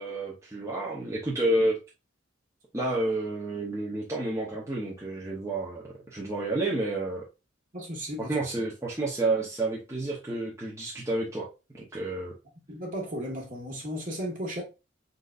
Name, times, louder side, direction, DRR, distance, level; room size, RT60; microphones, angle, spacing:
voice 1, 0.0-1.8 2.7-7.2 8.3-11.5 11.7-12.3, right 2 dB, 15° right, 0.9 m, -30 dB
voice 2, 7.7-8.7 12.7-14.6, equal, 45° right, 1.7 m, -35 dB
4.1 x 4.0 x 2.5 m
head